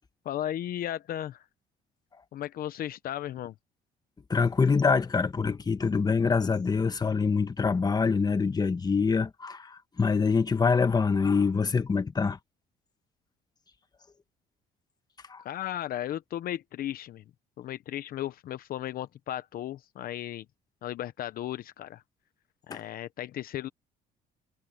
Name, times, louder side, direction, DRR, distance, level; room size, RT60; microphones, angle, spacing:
voice 1, 0.2-1.4 2.3-3.5 15.4-17.2 17.6-20.5 20.8-22.0 22.7-23.7, left 12 dB, 60° left, 0.8 m, -35 dB
voice 2, 4.3-12.4 15.3-15.4 22.7-22.8, left 5 dB, 25° left, 1.4 m, -25 dB
cardioid pair, 110°, 17 cm